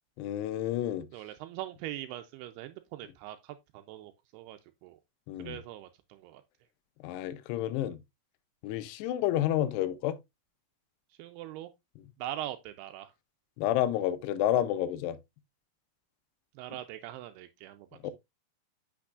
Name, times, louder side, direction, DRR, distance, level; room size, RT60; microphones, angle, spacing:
voice 1, 0.2-1.1 5.3-5.6 7.0-8.0 8.6-10.2 13.6-15.2 18.0-18.1, left 12 dB, 85° left, 2.7 m, -30 dB
voice 2, 1.1-5.0 5.4-6.4 11.2-11.7 12.2-13.1 16.6-17.9, right 13 dB, 80° right, 2.5 m, -42 dB
8.5 x 5.9 x 2.4 m
omnidirectional pair, 4.7 m